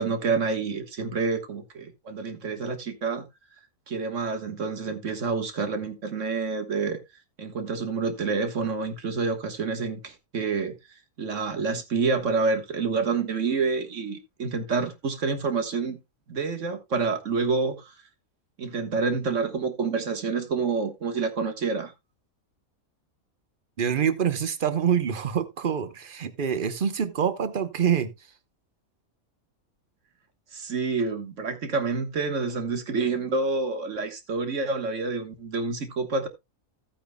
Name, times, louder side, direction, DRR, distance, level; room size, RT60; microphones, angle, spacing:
voice 1, 0.0-3.2 3.9-7.0 7.4-10.7 11.2-16.0 16.3-17.9 18.6-21.9 30.5-36.3, right 4 dB, 60° right, 1.7 m, -28 dB
voice 2, 23.8-28.1, right 8 dB, 45° right, 1.0 m, -26 dB
15.0 x 8.7 x 2.2 m
omnidirectional pair, 1.4 m